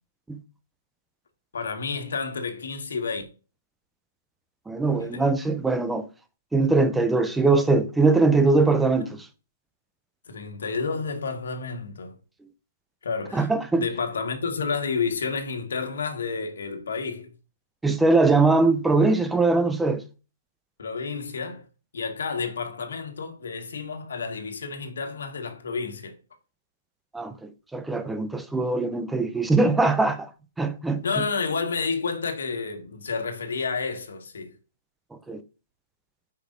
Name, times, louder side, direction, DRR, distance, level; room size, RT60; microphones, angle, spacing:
voice 1, 1.5-3.2 5.0-5.3 10.3-12.1 13.0-13.5 13.7-17.3 20.8-21.6 21.9-26.2 31.0-34.5, left 5 dB, 80° left, 1.5 m, -30 dB
voice 2, 4.7-6.1 6.5-9.3 13.3-13.8 17.8-20.0 27.1-30.3 30.6-31.2 35.3-35.4, right 3 dB, 5° right, 0.5 m, -21 dB
5.2 x 4.9 x 3.9 m
hypercardioid pair, 165°, 0 cm